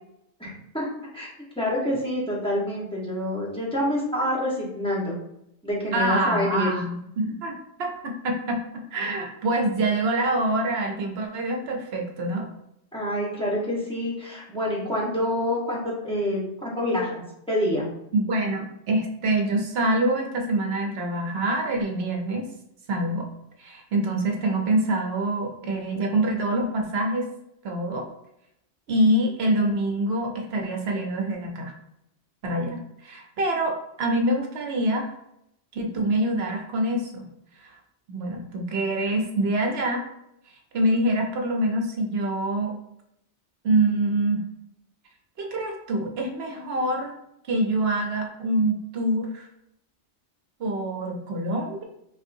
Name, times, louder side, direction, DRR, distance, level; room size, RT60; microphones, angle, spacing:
voice 1, 0.4-1.3 1.6-5.1 5.6-6.7 12.9-17.2 17.5-17.9, left 1 dB, 5° left, -6 dB, 1.1 m, -27 dB
voice 2, 5.9-8.6 8.9-12.5 18.1-22.4 22.9-23.3 23.6-27.3 27.6-28.1 28.9-31.7 32.4-35.1 35.7-37.3 37.6-37.7 38.1-40.0 40.7-42.7 43.6-44.4 45.4-47.1 47.5-49.4 50.6-51.8, right 1 dB, 65° right, 2 dB, 0.9 m, -25 dB
5.3 x 2.5 x 2.6 m, 0.80 s
omnidirectional pair, 1.2 m